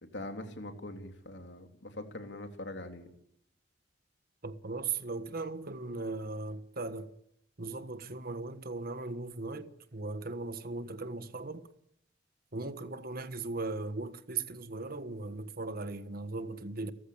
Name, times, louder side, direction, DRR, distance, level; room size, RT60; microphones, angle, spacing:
voice 1, 0.0-3.1, left 1 dB, 65° left, 3.4 m, -43 dB
voice 2, 4.4-7.1 7.6-11.7 12.5-16.9, right 3 dB, 50° right, 1.4 m, -38 dB
30.0 x 14.5 x 8.7 m
head